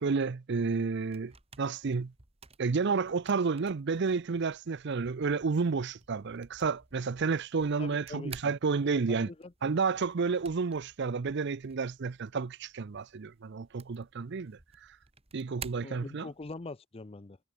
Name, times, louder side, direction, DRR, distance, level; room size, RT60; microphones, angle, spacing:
voice 1, 0.0-1.3 1.6-2.1 2.6-9.3 9.6-14.6 15.3-16.3, right 4 dB, 55° right, 0.5 m, -31 dB
sound 1, 0.7-16.7, right 5 dB, 30° right, 2.0 m, -54 dB
voice 2, 7.8-8.5 9.1-9.7 15.8-17.4, left 3 dB, 30° left, 0.6 m, -43 dB
head